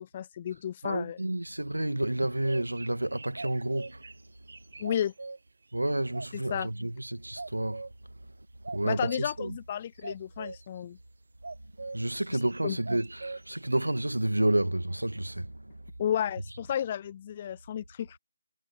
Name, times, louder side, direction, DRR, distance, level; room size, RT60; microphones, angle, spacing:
voice 1, 0.0-1.2 4.8-5.1 6.5-6.7 8.8-11.0 12.6-12.8 16.0-18.2, left 10 dB, 30° left, 0.4 m, -32 dB
voice 2, 0.8-4.0 5.7-7.9 8.7-9.6 11.9-15.8, right 1 dB, 80° right, 2.0 m, -30 dB
sound 1, 2.2-5.4 6.1-6.8 7.4-7.9 8.6-9.2 10.0-10.6 11.4-12.0 12.3-14.1, right 3 dB, 60° right, 0.7 m, -42 dB
figure-of-eight pair, 155°, 0 cm